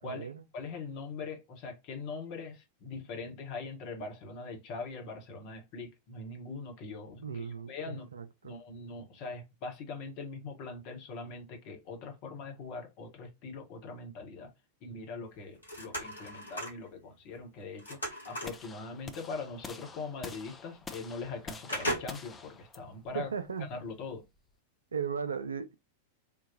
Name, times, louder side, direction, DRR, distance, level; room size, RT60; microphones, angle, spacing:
voice 1, 0.0-0.4 7.2-8.5 23.1-23.7 24.9-25.7, right 6 dB, 70° right, 0.4 m, -37 dB
voice 2, 0.5-8.1 8.4-14.5 14.8-23.3 23.7-24.2, left 4 dB, 45° left, 1.0 m, -42 dB
sound 1, 15.3-16.9 17.3-18.7 19.8-19.9 20.3-20.4 20.9-21.3 21.7-22.5 23.0-23.1, equal, 80° left, 1.3 m, -38 dB
sound 2, 18.4-24.5, left 4 dB, 15° left, 0.5 m, -48 dB
3.7 x 2.3 x 2.6 m
figure-of-eight pair, 90°, 0 cm